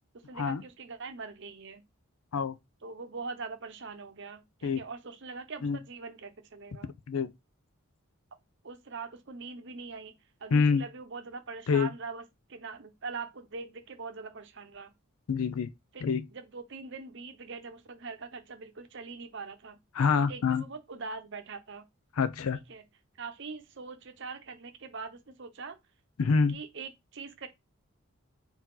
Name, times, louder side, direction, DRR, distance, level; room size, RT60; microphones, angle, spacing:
voice 1, 0.3-1.8 2.8-6.9 8.6-10.1 10.4-12.2 12.5-14.9 15.9-19.8 20.3-21.8 22.7-22.8 23.2-25.8 26.5-27.5, right 4 dB, 55° right, 0.8 m, -42 dB
voice 2, 10.5-10.8 11.7-11.9 15.3-15.7 16.0-16.2 19.9-20.6 22.2-22.6 26.2-26.6, left 5 dB, 80° left, 0.5 m, -26 dB
4.5 x 2.8 x 3.8 m
head